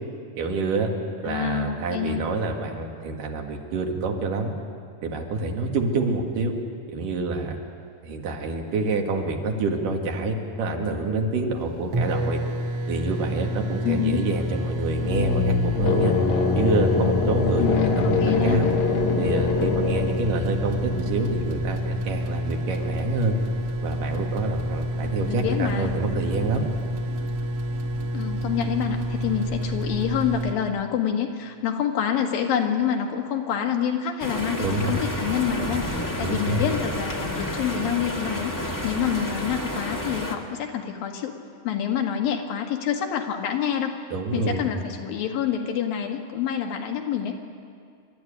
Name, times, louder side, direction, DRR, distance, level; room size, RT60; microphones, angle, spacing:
voice 1, 0.4-0.9 1.2-4.5 5.0-6.5 6.9-7.6 8.0-12.4 12.9-16.1 16.6-18.7 19.2-23.4 23.8-26.7 34.6-35.1 36.2-36.7 44.1-44.6, right 3 dB, 70° right, 2 dB, 3.5 m, -27 dB
voice 2, 1.2-2.2 13.8-14.2 17.6-18.6 25.0-25.9 28.1-38.5 38.8-41.4 41.6-44.0 44.3-47.3, left 8 dB, 85° left, 3 dB, 3.5 m, -27 dB
sound 1, 11.6-11.7 11.9-30.5, equal, 50° right, 2.2 m, -29 dB
sound 2, 14.6-22.1, left 4 dB, 65° left, 2.4 m, -25 dB
sound 3, 34.2-40.4, left 1 dB, 15° left, 0.8 m, -30 dB
27.0 x 13.0 x 10.0 m, 2.2 s
omnidirectional pair, 4.0 m